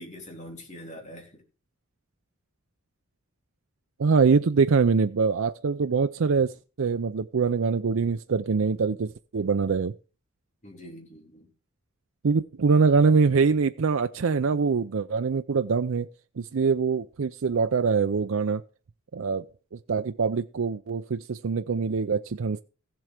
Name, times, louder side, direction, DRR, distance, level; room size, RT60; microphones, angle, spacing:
voice 1, 0.0-1.4 10.6-11.5, equal, 35° left, 3.2 m, -44 dB
voice 2, 4.0-9.9 12.2-16.1 16.4-18.6 19.1-22.6, right 5 dB, 90° right, 0.5 m, -24 dB
15.0 x 7.7 x 5.0 m
head